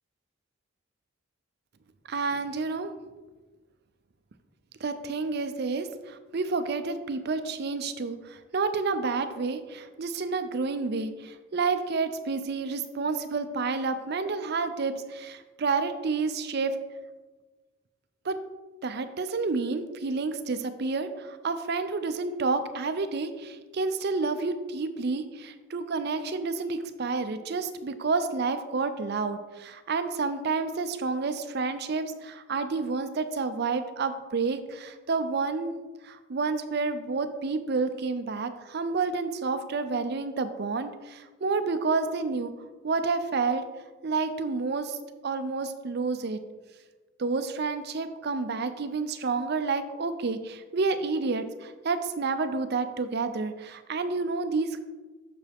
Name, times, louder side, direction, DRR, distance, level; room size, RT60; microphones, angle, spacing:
voice 1, 2.1-2.9 4.8-16.8 18.2-18.4 18.8-35.7 36.0-42.5 42.8-43.6 44.0-45.0 45.2-46.4 47.2-54.8, right 4 dB, 50° right, 10 dB, 0.5 m, -29 dB
7.0 x 6.8 x 3.5 m, 1.2 s
head